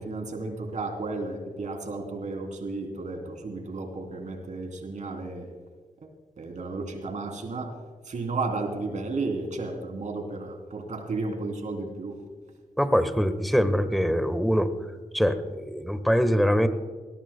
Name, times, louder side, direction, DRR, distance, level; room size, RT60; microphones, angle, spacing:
voice 1, 0.0-5.5 6.4-7.7 8.0-12.2, right 3 dB, 65° right, 4 dB, 3.2 m, -33 dB
voice 2, 12.8-14.7 15.1-16.7, equal, ahead, 10 dB, 1.3 m, -23 dB
21.0 x 17.5 x 2.2 m, 1.5 s
cardioid pair, 75°, 13 cm